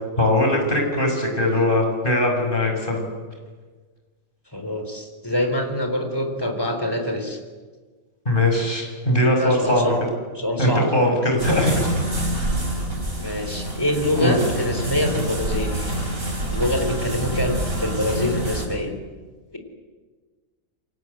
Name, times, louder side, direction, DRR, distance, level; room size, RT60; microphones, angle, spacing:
voice 1, 0.2-3.0 8.3-9.9 10.6-11.9 14.1-14.3, left 1 dB, 40° left, 2 dB, 5.9 m, -20 dB
voice 2, 4.5-7.4 9.2-10.0 10.3-11.1 13.1-15.9 16.5-18.9 19.5-19.6, left 1 dB, 15° left, 5 dB, 4.1 m, -25 dB
sound 1, 11.4-18.7, right 1 dB, 80° right, 7.0 m, -27 dB
29.5 x 23.5 x 8.1 m, 1.4 s
omnidirectional pair, 1.4 m